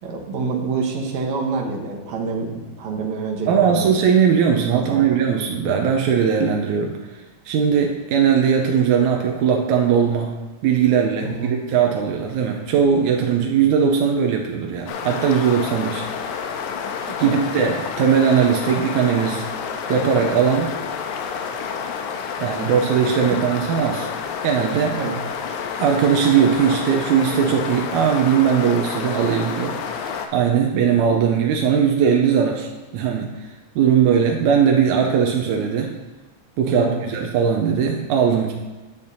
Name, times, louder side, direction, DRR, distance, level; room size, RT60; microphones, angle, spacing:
voice 1, 0.0-3.9 4.7-5.2 11.3-11.5 17.2-17.4 23.3-23.4 25.0-25.2 36.7-37.0, right 4 dB, 70° right, 0 dB, 2.5 m, -27 dB
voice 2, 3.5-6.9 7.5-10.3 10.6-16.0 17.2-19.4 19.9-20.8 22.4-24.1 24.4-25.0 25.8-29.8 30.3-33.3 33.8-35.9 36.6-38.5, right 7 dB, 90° right, 1 dB, 2.1 m, -19 dB
sound 1, 14.9-30.3, left 6 dB, 85° left, 2.1 m, -29 dB
10.5 x 8.4 x 2.8 m, 1.2 s
omnidirectional pair, 3.4 m